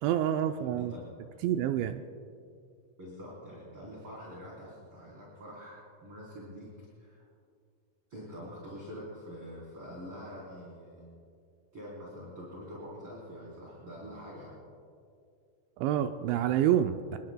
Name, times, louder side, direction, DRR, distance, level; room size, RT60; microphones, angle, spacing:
voice 1, 0.0-0.9 1.4-2.0 15.8-17.2, right 11 dB, 85° right, 7 dB, 2.8 m, -28 dB
voice 2, 3.0-7.2 8.1-11.0 11.7-14.6, equal, 30° right, -7 dB, 4.2 m, -45 dB
29.5 x 20.5 x 2.2 m, 2.3 s
omnidirectional pair, 5.3 m